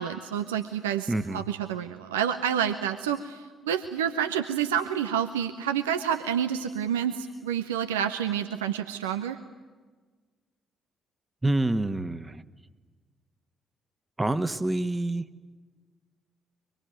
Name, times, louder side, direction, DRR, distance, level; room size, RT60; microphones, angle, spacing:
voice 1, 0.0-9.4, right 9 dB, 80° right, 8 dB, 0.8 m, -29 dB
voice 2, 1.1-1.4 11.4-12.4 14.2-15.3, right 2 dB, 20° right, 11 dB, 1.4 m, -27 dB
24.5 x 23.5 x 9.2 m, 1.4 s
figure-of-eight pair, 40°, 0 cm